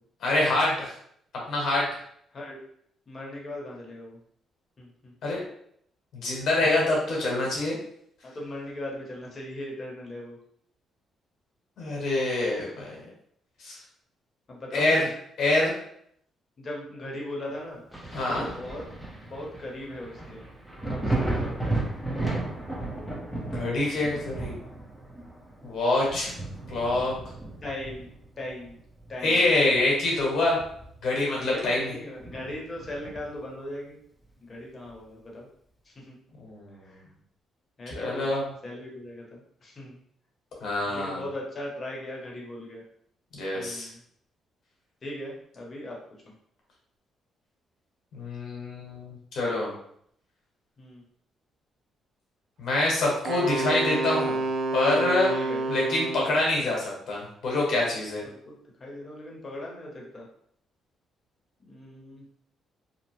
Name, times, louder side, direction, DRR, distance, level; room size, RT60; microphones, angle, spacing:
voice 1, 0.2-0.9 1.5-1.9 5.2-5.4 6.1-7.7 11.8-12.9 13.6-13.7 14.7-15.1 15.4-15.8 18.1-18.4 23.5-24.5 25.6-26.3 26.7-27.1 29.2-30.6 31.0-31.9 36.4-36.9 37.9-38.5 40.6-41.2 43.3-43.9 48.1-49.7 52.6-54.4 54.7-55.3 55.7-58.2, left 2 dB, 70° left, -3 dB, 1.1 m, -25 dB
voice 2, 3.1-4.2 4.8-5.1 6.6-7.1 8.2-10.4 14.5-15.1 16.6-17.8 18.3-18.8 19.2-20.4 20.9-21.8 27.6-28.1 28.4-28.8 29.1-29.5 31.5-34.0 34.4-35.5 35.8-36.2 36.8-37.0 37.8-38.3 38.6-40.0 40.9-42.8 43.5-44.0 45.0-46.0 50.8-51.0 55.3-55.6 58.5-58.6 58.8-60.3 61.6-62.2, left 1 dB, 35° left, -2 dB, 1.0 m, -39 dB
Thunder, 17.9-29.3 29.7-31.2 31.5-31.6 32.2-33.5 34.9-35.0, right 2 dB, 5° left, 0.7 m, -34 dB
Wind instrument woodwind instrument, 53.3-56.4, right 3 dB, 55° right, 0.3 m, -28 dB
2.8 x 2.0 x 3.1 m, 0.67 s
cardioid pair, 90°, 0 cm